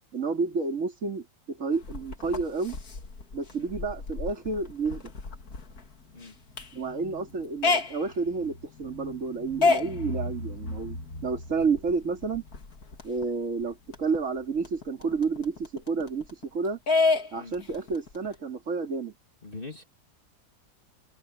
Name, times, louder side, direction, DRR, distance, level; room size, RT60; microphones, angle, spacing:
voice 1, 0.1-2.8 3.3-5.1 6.7-11.0 11.2-12.4 13.0-16.8 17.3-19.1, right 4 dB, 45° right, 3.0 m, -30 dB
sound 1, 1.7-13.2 13.6-13.7 13.9-16.4 16.9-18.3, left 4 dB, 55° left, 2.6 m, -31 dB
voice 2, 19.4-19.8, left 3 dB, 30° left, 2.9 m, -42 dB
omnidirectional pair, 1.9 m